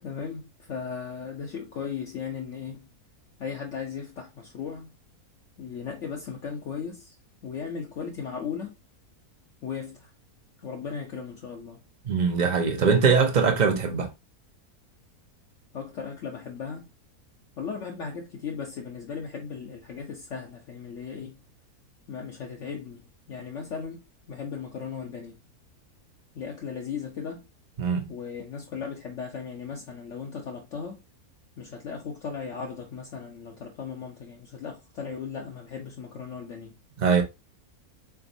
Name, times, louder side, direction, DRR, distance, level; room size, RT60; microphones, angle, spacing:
voice 1, 0.0-2.9 3.4-4.9 5.6-7.2 7.4-8.7 9.6-10.1 10.6-11.8 15.7-16.9 17.6-21.4 22.1-24.0 24.3-25.4 26.3-27.5 28.1-31.0 31.6-36.7, left 6 dB, 60° left, 0.9 m, -37 dB
voice 2, 12.0-14.1 27.8-28.1 37.0-37.2, right 5 dB, 50° right, 0.5 m, -22 dB
3.9 x 3.4 x 2.5 m
omnidirectional pair, 1.6 m